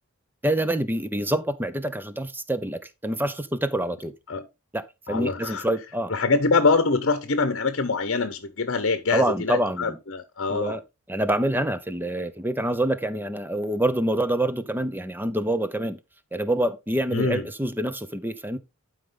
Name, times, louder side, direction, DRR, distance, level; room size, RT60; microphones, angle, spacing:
voice 1, 0.4-4.1 4.7-6.1 9.1-10.0 10.5-10.8 11.1-16.0 16.3-18.6, right 1 dB, 10° right, 0.7 m, -26 dB
voice 2, 5.1-5.6 6.1-10.8 17.1-17.4, left 4 dB, 55° left, 0.9 m, -24 dB
11.5 x 5.0 x 3.8 m
head